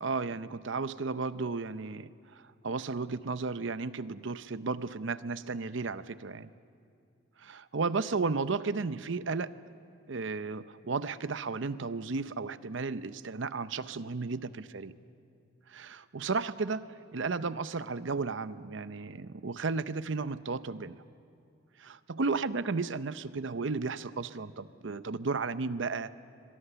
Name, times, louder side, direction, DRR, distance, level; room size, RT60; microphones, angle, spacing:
voice 1, 0.0-2.1 2.6-6.5 7.4-9.5 10.1-14.9 15.7-16.9 17.1-21.0 21.8-26.1, right 4 dB, 65° right, 14 dB, 0.7 m, -34 dB
23.0 x 23.0 x 6.9 m, 2.3 s
head